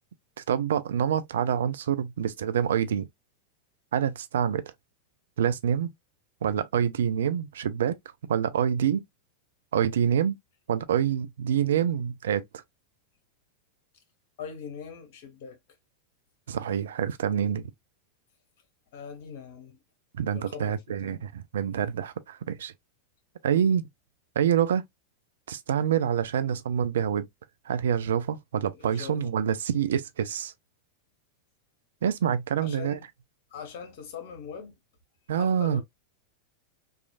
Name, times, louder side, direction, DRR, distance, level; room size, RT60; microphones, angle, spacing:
voice 1, 0.5-3.1 3.9-4.6 5.4-5.9 6.4-8.0 8.3-9.0 9.7-10.4 10.7-12.4 16.5-17.7 20.2-22.7 23.4-23.9 24.4-24.8 25.5-27.3 27.7-30.5 32.0-33.0 35.3-35.8, right 8 dB, 60° right, 0.3 m, -26 dB
voice 2, 14.4-15.6 18.9-19.8 20.3-21.2 28.7-29.4 32.6-33.1 33.5-34.7 35.4-35.8, left 6 dB, 50° left, 1.0 m, -42 dB
3.1 x 2.4 x 2.4 m
figure-of-eight pair, 90°, 0 cm